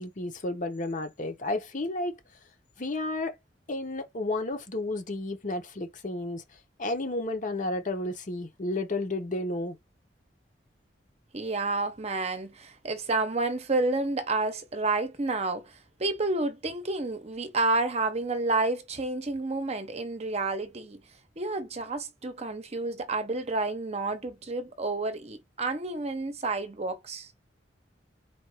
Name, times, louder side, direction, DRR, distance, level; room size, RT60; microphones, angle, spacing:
voice 1, 0.0-2.1 2.8-3.4 3.7-6.4 6.8-9.8, left 2 dB, 45° left, 1.0 m, -32 dB
voice 2, 11.3-21.0 21.4-27.3, right 2 dB, 35° right, 0.8 m, -30 dB
4.2 x 2.5 x 4.7 m
head